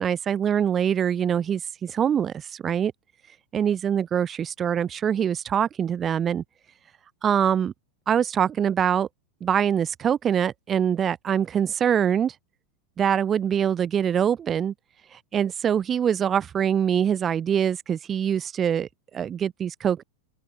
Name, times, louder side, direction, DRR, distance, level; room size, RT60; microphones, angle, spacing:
voice 1, 0.0-2.9 3.5-6.4 7.2-7.7 8.1-9.1 9.4-12.3 13.0-14.7 15.3-20.0, right 8 dB, 25° right, 1.0 m, -24 dB
open air
figure-of-eight pair, 90°, 0 cm